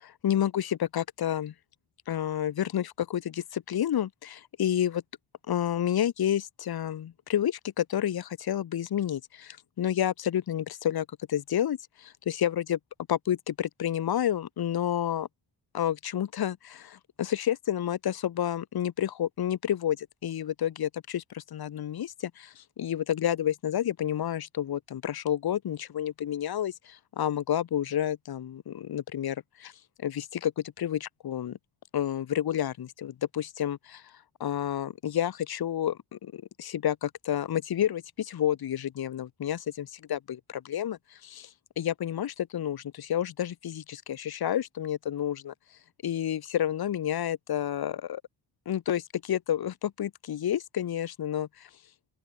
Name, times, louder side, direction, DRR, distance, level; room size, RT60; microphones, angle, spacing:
voice 1, 0.0-1.5 2.1-5.0 5.5-12.8 13.1-15.3 15.7-29.7 30.0-31.6 31.9-34.0 34.4-41.5 41.8-45.5 46.0-48.2 48.7-51.7, left 10 dB, 55° left, 0.9 m, -30 dB
open air
cardioid pair, 90°, 46 cm